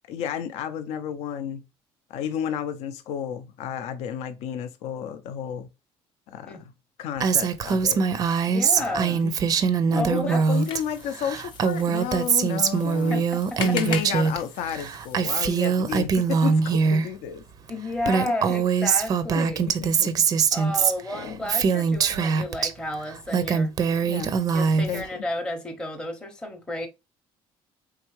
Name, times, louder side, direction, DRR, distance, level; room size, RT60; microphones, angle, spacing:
voice 1, 0.1-1.6 2.1-5.7 6.3-6.7 7.0-8.1 8.8-9.4 9.9-13.2 13.6-17.4 19.4-20.2 21.1-21.4 24.0-24.5 24.9-25.2, left 9 dB, 80° left, 0.6 m, -32 dB
Female speech woman speaking, 7.2-10.8 11.1-14.4 14.7-17.1 17.7-17.8 18.0-22.7 23.1-25.1, right 6 dB, 35° right, 0.4 m, -23 dB
voice 2, 8.5-9.2 9.9-10.5 13.1-13.8 17.7-19.7 20.5-23.7 24.5-26.9, left 1 dB, 10° left, 0.7 m, -32 dB
sound 1, 10.4-15.5, left 6 dB, 45° left, 0.8 m, -39 dB
4.5 x 3.5 x 3.0 m
cardioid pair, 170°, 11 cm